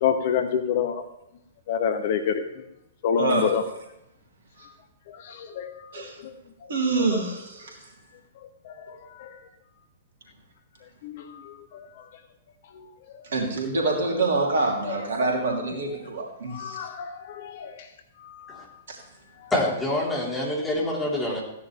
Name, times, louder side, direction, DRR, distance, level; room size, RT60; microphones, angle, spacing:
voice 1, 0.0-1.0 1.7-2.5 3.0-3.6 5.1-6.3 8.6-9.4 11.0-11.9 13.1-13.2 14.8-14.9 16.5-17.7 18.2-18.6, left 7 dB, 45° left, 8 dB, 1.1 m, -28 dB
voice 2, 3.2-3.5 5.9-6.2 6.7-7.8 13.3-16.9 18.9-19.0, right 3 dB, 60° right, 0 dB, 3.2 m, -26 dB
voice 3, 19.5-21.4, left 1 dB, 10° left, -4 dB, 3.9 m, -26 dB
15.5 x 10.5 x 3.4 m, 0.84 s
figure-of-eight pair, 110°, 0 cm